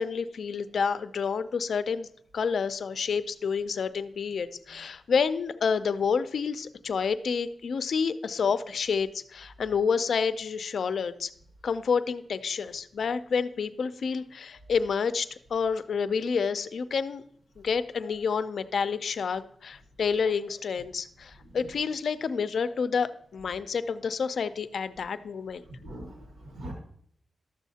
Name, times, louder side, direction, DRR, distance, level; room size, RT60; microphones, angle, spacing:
voice 1, 0.0-2.1 2.3-11.3 11.6-17.2 17.6-25.6, left 6 dB, 65° left, 12 dB, 0.4 m, -29 dB
voice 2, 25.8-26.7, right 1 dB, 85° right, 1 dB, 1.6 m, -42 dB
12.5 x 7.2 x 2.8 m, 0.65 s
wide cardioid pair, 145°, 0 cm